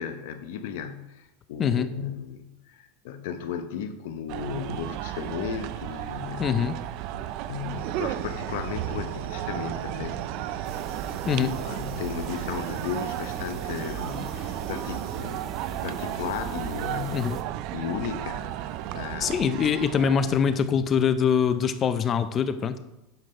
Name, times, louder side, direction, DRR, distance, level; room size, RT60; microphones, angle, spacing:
voice 1, 0.0-6.7 7.1-10.2 10.5-10.7 11.4-17.3 17.7-19.7, left 8 dB, 70° left, 9 dB, 0.8 m, -35 dB
sound 1, 4.3-20.6, right 13 dB, 45° right, 0.3 m, -34 dB
voice 2, 6.4-6.8 11.3-11.5 17.1-17.4 19.2-22.7, left 7 dB, 25° left, 11 dB, 0.5 m, -23 dB
sound 2, 7.8-15.2, right 7 dB, 80° right, 0.7 m, -40 dB
sound 3, 10.6-17.4, right 5 dB, 25° right, 0.7 m, -41 dB
8.0 x 5.6 x 4.3 m, 0.93 s
supercardioid pair, 165°, 0 cm